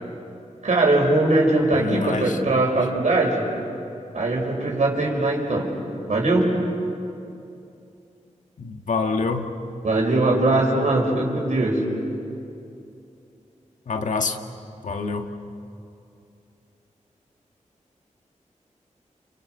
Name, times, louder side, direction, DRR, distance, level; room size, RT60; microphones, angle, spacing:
voice 1, 0.6-3.5 4.1-5.7 6.1-6.5 9.8-11.8, right 2 dB, 70° right, 0 dB, 5.8 m, -21 dB
voice 2, 1.8-2.9 8.6-9.5 13.9-14.4 14.8-15.3, left 4 dB, 75° left, 4 dB, 1.8 m, -27 dB
30.0 x 29.0 x 6.5 m, 2.7 s
wide cardioid pair, 70°, 13 cm